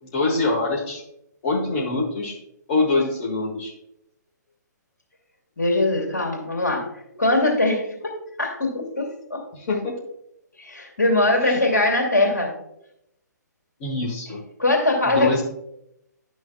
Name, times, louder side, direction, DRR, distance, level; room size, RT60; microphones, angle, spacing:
voice 1, 0.0-1.0 1.4-2.4 2.7-3.7 9.5-9.9 11.4-11.6 13.8-14.4 15.0-15.4, left 3 dB, 30° left, -2 dB, 1.3 m, -24 dB
voice 2, 5.6-9.4 10.6-12.5 14.6-15.4, left 2 dB, 70° left, 0 dB, 2.2 m, -22 dB
10.5 x 6.2 x 2.4 m, 0.79 s
figure-of-eight pair, 130°, 10 cm